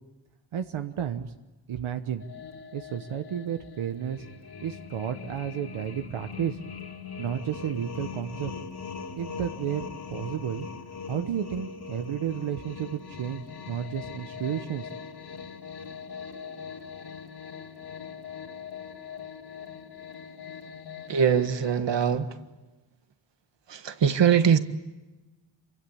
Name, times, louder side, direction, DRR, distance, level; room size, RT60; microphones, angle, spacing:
voice 1, 0.5-1.3 1.7-2.2 2.7-4.3 4.6-6.6 7.2-8.5 9.2-10.7 11.0-14.9, right 9 dB, 80° right, 7 dB, 1.3 m, -32 dB
sound 1, 2.2-21.7, left 6 dB, 50° left, 3.5 m, -41 dB
voice 2, 21.1-22.4 23.7-24.6, right 7 dB, 60° right, 9 dB, 1.7 m, -22 dB
28.0 x 24.0 x 8.7 m, 1.1 s
wide cardioid pair, 125°, 48 cm